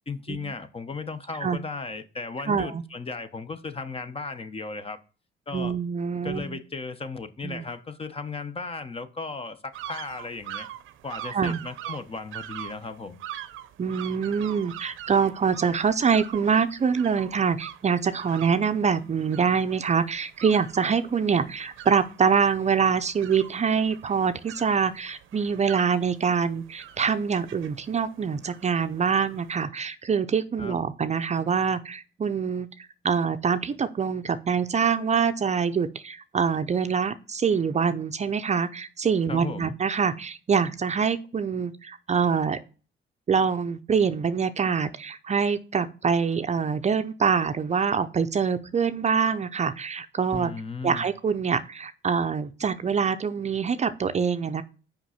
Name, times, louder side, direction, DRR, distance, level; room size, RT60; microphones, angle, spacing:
voice 1, 0.1-5.0 5.5-5.8 6.2-10.7 11.0-13.2 30.6-30.8 39.3-39.8 50.3-51.0, left 4 dB, 30° left, 0.8 m, -36 dB
voice 2, 2.5-2.8 5.5-6.6 7.4-7.6 11.3-11.6 13.8-42.6 43.3-50.5 50.8-54.6, right 6 dB, 35° right, 0.6 m, -25 dB
sound 1, 9.7-29.6, right 12 dB, 85° right, 0.7 m, -43 dB
5.9 x 5.1 x 5.6 m
cardioid pair, 90°, 20 cm